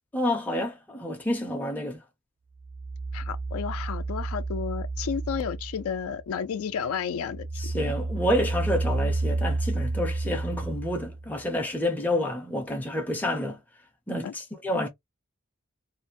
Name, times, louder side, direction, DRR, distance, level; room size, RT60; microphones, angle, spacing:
voice 1, 0.1-2.0 7.6-13.6 14.1-14.9, left 1 dB, 10° left, 0.4 m, -29 dB
sound 1, 2.6-6.5 6.8-11.4, right 2 dB, 55° right, 0.5 m, -31 dB
voice 2, 3.1-7.5 14.2-14.3, left 7 dB, 80° left, 0.3 m, -32 dB
2.4 x 2.0 x 2.7 m
head